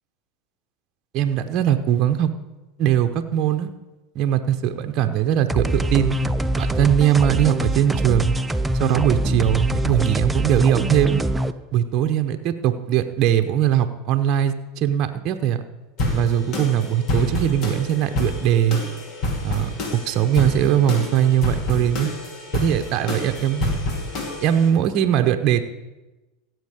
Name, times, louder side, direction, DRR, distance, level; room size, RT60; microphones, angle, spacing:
voice 1, 1.1-2.3 2.8-3.7 4.1-6.2 6.6-8.4 8.8-11.2 11.7-15.6 16.1-18.8 19.4-22.1 22.5-23.7 24.4-25.6, right 10 dB, 50° right, 7 dB, 0.8 m, -20 dB
sound 1, 5.5-11.5, right 1 dB, 10° right, 0.5 m, -23 dB
sound 2, 16.0-24.7, left 1 dB, 50° left, 2.5 m, -28 dB
16.0 x 7.9 x 5.0 m, 1.1 s
hypercardioid pair, 85°, 0 cm